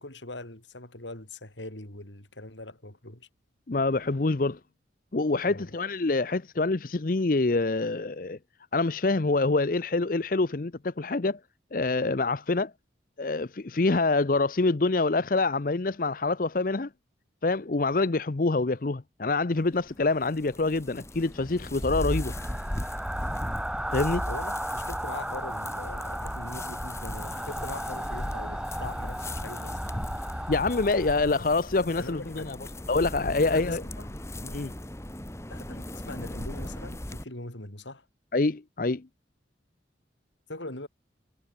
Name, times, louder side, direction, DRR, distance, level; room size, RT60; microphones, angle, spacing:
voice 1, 0.0-3.3 5.4-5.7 24.3-29.8 32.0-32.6 33.4-34.1 34.4-34.6 35.5-38.1 40.5-40.9, left 2 dB, 80° left, 5.1 m, -41 dB
voice 2, 3.7-4.6 5.1-8.4 8.7-11.4 11.7-12.7 13.2-16.9 17.4-22.3 23.9-24.3 30.5-32.6 32.9-33.8 34.5-34.7 38.3-39.0, left 3 dB, 45° left, 0.7 m, -26 dB
sound 1, 19.5-37.2, left 1 dB, 15° left, 1.6 m, -38 dB
sound 2, 21.3-31.3, equal, 5° right, 2.1 m, -34 dB
head